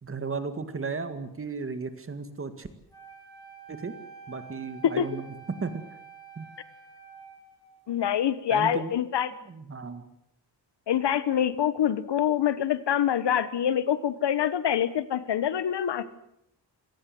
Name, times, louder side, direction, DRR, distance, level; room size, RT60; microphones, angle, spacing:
voice 1, 0.0-2.7 3.7-3.9 4.3-5.8 6.4-6.5 8.5-8.9 9.5-10.0, right 4 dB, 30° right, 10 dB, 2.1 m, -35 dB
Wind instrument woodwind instrument, 2.9-8.0, right 6 dB, 10° left, 6.6 m, -48 dB
voice 2, 7.9-9.3 10.9-16.1, left 9 dB, 70° left, 14 dB, 1.4 m, -25 dB
27.5 x 18.0 x 7.9 m, 0.77 s
wide cardioid pair, 170°, 42 cm